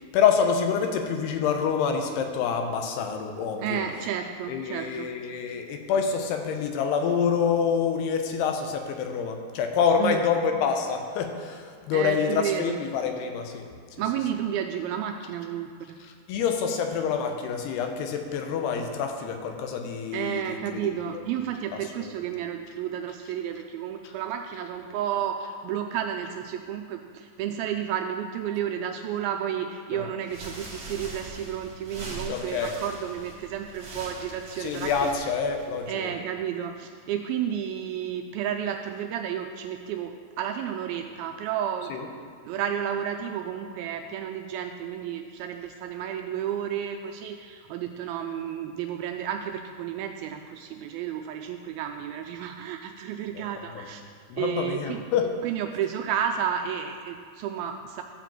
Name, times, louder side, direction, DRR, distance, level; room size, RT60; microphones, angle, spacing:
voice 1, 0.1-3.8 4.5-13.6 16.0-21.2 22.0-22.1 24.0-24.1 29.9-30.1 32.3-32.8 34.6-36.1 41.9-42.1 53.3-53.7 54.3-55.3, left 6 dB, 80° left, 5 dB, 2.9 m, -27 dB
voice 2, 3.6-5.1 10.0-10.2 11.9-12.8 14.0-16.0 20.1-34.9 35.9-41.9 42.5-54.0 54.4-55.0 55.4-58.0, right 9 dB, 85° right, 5 dB, 2.2 m, -31 dB
sound 1, 30.2-35.9, right 2 dB, 40° right, 1.3 m, -42 dB
13.0 x 5.0 x 7.4 m, 2.2 s
omnidirectional pair, 4.7 m